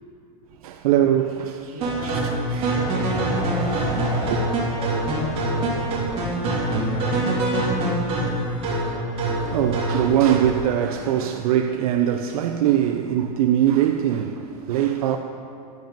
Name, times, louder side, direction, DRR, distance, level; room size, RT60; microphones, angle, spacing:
voice 1, 0.6-2.2 2.5-3.1 3.7-3.9 4.3-4.4 9.5-15.2, right 10 dB, 65° right, 0.4 m, -22 dB
voice 2, 1.7-7.4, left 2 dB, 80° left, 1.4 m, -38 dB
sound 1, 1.8-10.5, right 1 dB, 30° right, 2.1 m, -24 dB
10.5 x 5.3 x 5.1 m
supercardioid pair, 160°, 20 cm